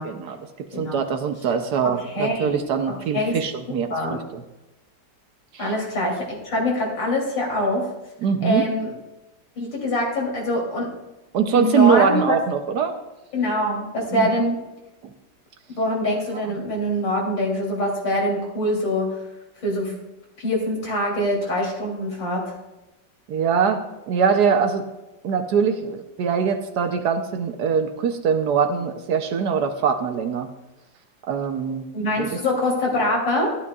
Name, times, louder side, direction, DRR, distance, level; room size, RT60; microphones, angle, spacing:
voice 1, 0.0-4.4 5.5-5.7 8.2-8.6 11.3-13.0 14.1-14.3 15.0-15.1 23.3-24.8 25.2-30.5 31.3-31.9 32.2-32.3, right 6 dB, 65° right, 7 dB, 1.2 m, -22 dB
voice 2, 1.8-2.6 3.1-3.4 3.9-4.2 5.6-7.9 8.4-8.9 9.6-10.9 11.5-12.4 13.3-14.6 15.8-19.1 19.6-19.9 20.4-22.5 31.9-33.6, left 1 dB, 75° left, -2 dB, 3.8 m, -24 dB
14.0 x 12.0 x 2.4 m, 1.0 s
omnidirectional pair, 2.0 m